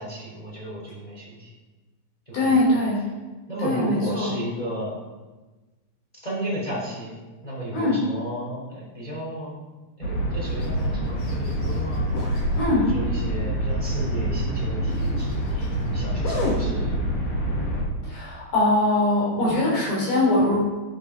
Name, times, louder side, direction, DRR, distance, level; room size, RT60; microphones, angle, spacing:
voice 1, 0.0-1.5 2.3-2.7 3.5-5.0 6.2-7.2 7.4-9.6 10.0-12.1 12.7-17.0 19.4-19.8, right 1 dB, 5° left, -5 dB, 3.3 m, -33 dB
voice 2, 2.3-3.0 3.6-4.3 7.7-8.0 12.6-12.8 18.0-20.6, left 2 dB, 50° left, -5 dB, 5.1 m, -22 dB
sound 1, 10.0-17.8, equal, 90° left, 1.3 m, -26 dB
11.0 x 7.6 x 5.1 m, 1.2 s
omnidirectional pair, 5.7 m